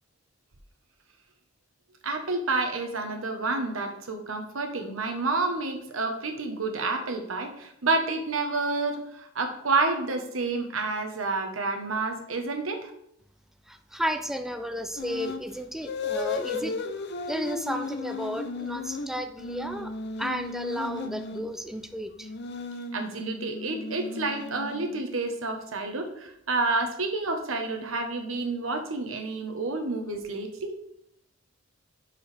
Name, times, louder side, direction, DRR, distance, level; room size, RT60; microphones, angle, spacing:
voice 1, 2.0-12.9 16.6-16.7 22.9-30.7, right 3 dB, 90° right, 5 dB, 1.2 m, -29 dB
voice 2, 13.7-16.7 17.3-19.9 20.2-22.3, equal, ahead, 7 dB, 0.4 m, -33 dB
sound 1, 15.0-15.5 15.8-21.5 22.2-25.1, left 4 dB, 55° left, 0.6 m, -35 dB
10.0 x 4.7 x 3.4 m, 0.75 s
head